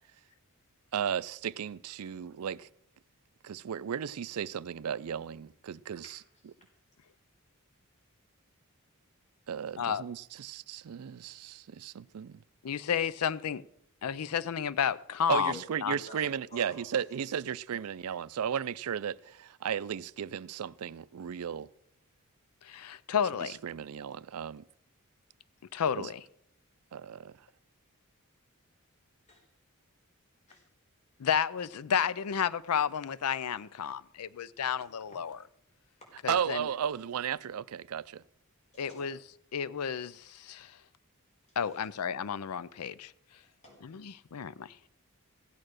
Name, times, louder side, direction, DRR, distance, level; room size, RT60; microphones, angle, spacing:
voice 1, 0.9-2.7 3.4-6.2 9.5-12.4 15.3-21.7 23.4-24.6 26.0-26.1 26.9-27.3 36.3-38.2, right 8 dB, 70° right, 0.4 m, -35 dB
voice 2, 6.0-6.7 9.8-9.9 15.2-17.2 17.7-17.8 29.3-29.4 30.5-30.7 35.1-35.4 36.0-36.1 38.7-39.1 41.6-41.9 43.3-43.9, equal, 30° left, 4.5 m, -52 dB
voice 3, 12.6-13.6 14.0-16.0 22.6-23.6 25.7-26.2 31.2-35.4 36.2-36.7 38.8-39.2 39.5-40.7 41.6-43.1 43.8-44.8, left 7 dB, 85° left, 0.5 m, -32 dB
15.5 x 8.7 x 6.4 m
head